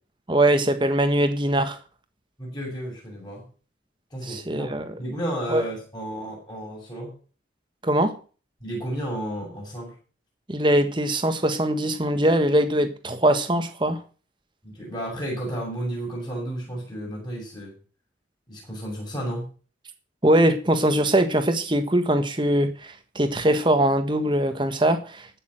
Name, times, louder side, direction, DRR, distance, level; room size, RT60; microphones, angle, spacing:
voice 1, 0.3-1.8 4.2-4.9 5.5-5.6 7.8-8.2 10.5-14.0 20.2-25.4, right 1 dB, 25° right, 1.5 m, -22 dB
voice 2, 2.4-3.5 4.1-7.1 8.6-9.9 14.6-17.7 18.5-19.5, right 1 dB, 20° left, 7.4 m, -32 dB
15.5 x 6.8 x 6.5 m
head